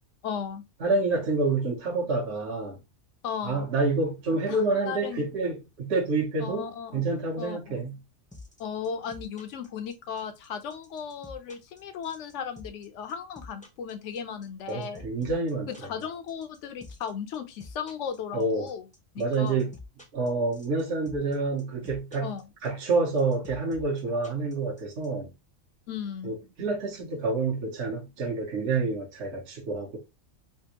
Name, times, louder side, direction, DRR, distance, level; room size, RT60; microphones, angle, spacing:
voice 1, 0.2-0.6 3.2-3.7 4.5-5.2 6.4-7.1 7.4-7.8 8.6-15.0 15.8-18.8 19.1-19.6 22.2-22.4 25.9-26.3, left 7 dB, 70° left, 0.9 m, -36 dB
voice 2, 0.8-2.8 3.4-6.7 6.9-8.0 14.7-15.7 18.3-18.7 19.2-19.7 20.1-22.3 22.6-25.3 26.2-30.0, right 3 dB, 60° right, 1.1 m, -28 dB
sound 1, 8.3-25.1, left 2 dB, 10° left, 0.5 m, -47 dB
3.4 x 2.4 x 2.8 m
omnidirectional pair, 1.3 m